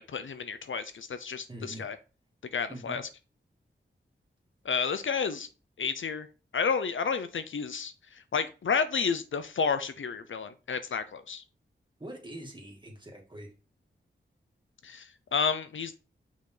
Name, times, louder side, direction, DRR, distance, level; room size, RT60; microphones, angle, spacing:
voice 1, 0.0-2.0 2.5-3.0 4.6-5.5 5.8-6.3 6.5-11.4 14.8-16.0, left 5 dB, 75° left, 11 dB, 0.6 m, -31 dB
voice 2, 1.5-1.9 2.7-3.0 12.0-13.5, right 1 dB, 25° right, 0 dB, 2.4 m, -43 dB
5.9 x 4.2 x 3.9 m, 0.33 s
cardioid pair, 60°, 20 cm